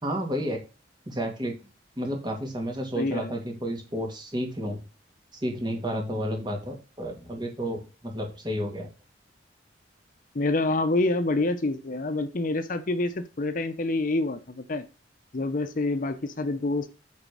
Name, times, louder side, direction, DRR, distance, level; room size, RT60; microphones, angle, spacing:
voice 1, 0.0-0.6 1.1-1.5 2.0-4.8 5.4-8.9, equal, 25° right, 1 dB, 2.3 m, -31 dB
voice 2, 3.0-3.3 10.3-14.9 15.3-16.9, left 2 dB, 45° left, 10 dB, 0.7 m, -27 dB
8.6 x 4.0 x 6.2 m, 0.32 s
head